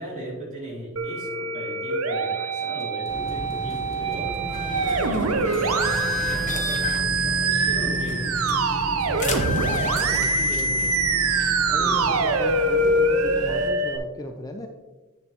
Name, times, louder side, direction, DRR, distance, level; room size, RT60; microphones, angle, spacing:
voice 1, 0.0-8.4 11.7-12.3, right 1 dB, 35° right, -4 dB, 2.7 m, -37 dB
Musical instrument, 1.0-14.0, right 3 dB, 85° right, 0.6 m, -24 dB
sound 1, 2.8-7.9 8.2-8.3 8.5-10.8, left 2 dB, ahead, 1.6 m, -50 dB
sound 2, 3.1-13.7, left 2 dB, 35° left, 1.0 m, -32 dB
voice 2, 9.0-10.9 11.7-14.7, left 1 dB, 15° left, 4 dB, 0.4 m, -36 dB
8.8 x 6.8 x 2.9 m, 1.2 s
head